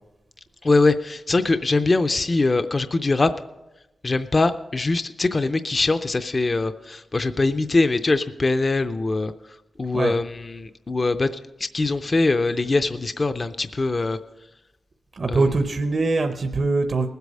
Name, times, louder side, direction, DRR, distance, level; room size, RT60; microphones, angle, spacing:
voice 1, 0.6-3.3 4.0-11.3 11.6-14.2 15.3-15.5, left 3 dB, 30° left, 10 dB, 0.4 m, -22 dB
voice 2, 15.1-17.1, right 3 dB, 45° right, 6 dB, 0.6 m, -22 dB
19.5 x 8.1 x 5.4 m, 0.98 s
wide cardioid pair, 135°, 0 cm